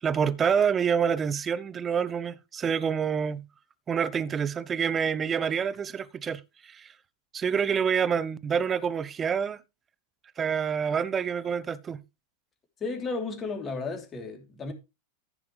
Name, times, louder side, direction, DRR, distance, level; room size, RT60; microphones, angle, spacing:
voice 1, 0.0-3.4 3.9-6.9 7.3-9.6 10.4-12.0, right 7 dB, 20° right, 0.8 m, -27 dB
voice 2, 12.8-14.7, left 4 dB, 20° left, 3.2 m, -33 dB
15.0 x 6.0 x 3.2 m
figure-of-eight pair, 90°, 0 cm